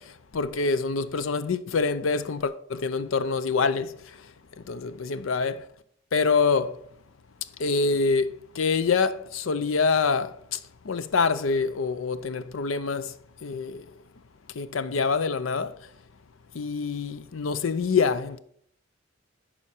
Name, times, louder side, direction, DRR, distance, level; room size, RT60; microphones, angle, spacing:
voice 1, 0.3-3.9 4.7-5.6 6.1-6.7 7.6-10.6 10.9-13.1 13.4-13.8 14.6-15.7 16.5-18.4, left 4 dB, 80° left, 0.6 m, -25 dB
11.0 x 4.4 x 4.3 m
head